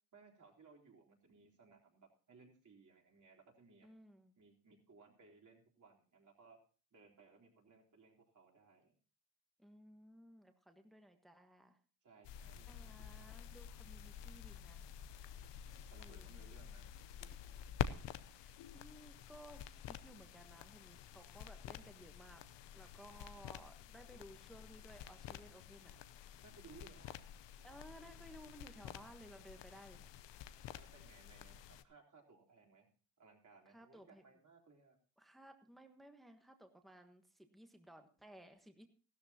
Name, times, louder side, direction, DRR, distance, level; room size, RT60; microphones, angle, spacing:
voice 1, 0.1-3.9 4.4-6.6 6.9-8.9 12.0-13.4 15.9-17.4 26.4-27.2 30.7-32.9 33.2-35.0, right 4 dB, 45° right, -1 dB, 3.8 m, -63 dB
voice 2, 3.8-4.4 9.6-11.8 12.7-14.8 15.9-16.3 18.0-22.4 22.7-26.0 27.6-30.1 33.7-34.2 35.2-38.9, equal, ahead, 6 dB, 1.3 m, -58 dB
sound 1, 12.2-31.8, left 10 dB, 80° left, 0.8 m, -49 dB
15.5 x 13.0 x 2.9 m, 0.37 s
cardioid pair, 95°, 42 cm